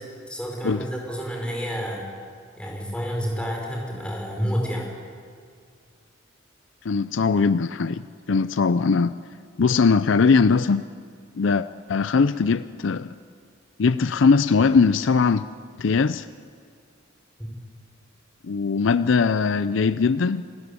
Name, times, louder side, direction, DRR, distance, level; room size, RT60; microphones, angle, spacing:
voice 1, 0.3-2.1 2.6-4.9, equal, 5° left, -1 dB, 5.3 m, -29 dB
voice 2, 6.8-8.0 8.3-9.1 9.6-10.8 11.4-13.1 13.8-15.4 15.8-16.3 18.4-20.4, left 5 dB, 65° left, 13 dB, 0.5 m, -20 dB
26.5 x 14.0 x 10.0 m, 2.1 s
head